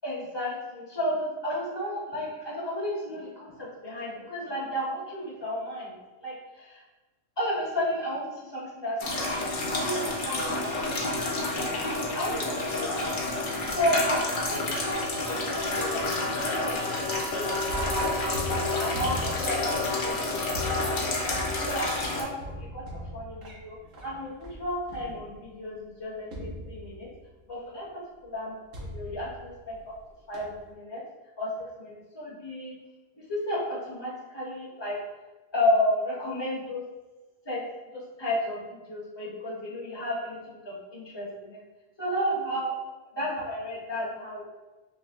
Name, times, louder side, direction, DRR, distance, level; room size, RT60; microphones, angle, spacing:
voice 1, 0.0-5.9 6.2-6.8 7.4-11.7 12.1-13.1 13.7-17.5 17.7-18.2 18.7-21.3 21.6-22.8 23.1-23.8 24.0-27.1 27.5-28.5 28.9-29.8 30.3-31.0 31.4-31.5 31.8-32.7 33.3-35.0 35.5-36.8 37.4-37.6 37.9-41.6 42.0-42.7 43.2-44.4, left 1 dB, 20° left, -6 dB, 1.0 m, -32 dB
sound 1, 9.0-22.2, left 2 dB, 50° left, 0.7 m, -29 dB
sound 2, 17.6-25.6 26.3-27.3 28.7-30.0 30.3-30.7, equal, 90° right, 1.3 m, -39 dB
5.8 x 2.0 x 2.5 m, 1.2 s
omnidirectional pair, 1.3 m